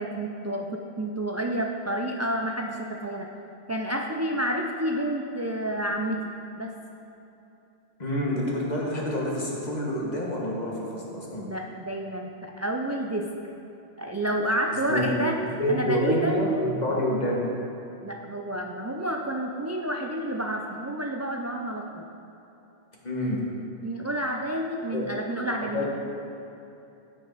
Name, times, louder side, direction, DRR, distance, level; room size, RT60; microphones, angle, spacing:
voice 1, 0.0-3.3 3.7-6.2 6.6-6.7 11.4-13.3 14.0-15.3 15.7-16.4 18.0-22.0 23.8-25.9, right 1 dB, 25° right, 1 dB, 0.4 m, -29 dB
voice 2, 8.0-11.4 14.7-15.2 15.5-17.4 23.0-23.4 24.9-25.0 25.6-25.9, equal, 40° left, -3 dB, 1.8 m, -27 dB
15.5 x 6.4 x 4.1 m, 2.9 s
omnidirectional pair, 1.1 m